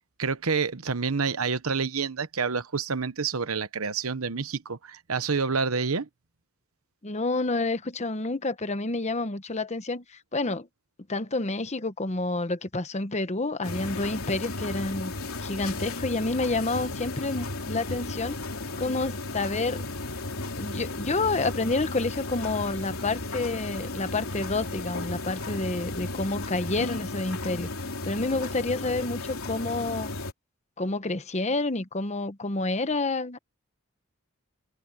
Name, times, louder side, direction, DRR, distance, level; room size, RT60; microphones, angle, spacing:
voice 1, 0.2-6.1, right 5 dB, 85° right, 1.0 m, -28 dB
voice 2, 7.0-10.7 11.1-15.1 15.4-18.4 18.8-19.8 20.6-27.7 28.0-30.1 30.8-33.4, left 2 dB, 30° left, 1.0 m, -29 dB
sound 1, 13.6-30.3, left 2 dB, 85° left, 3.2 m, -34 dB
head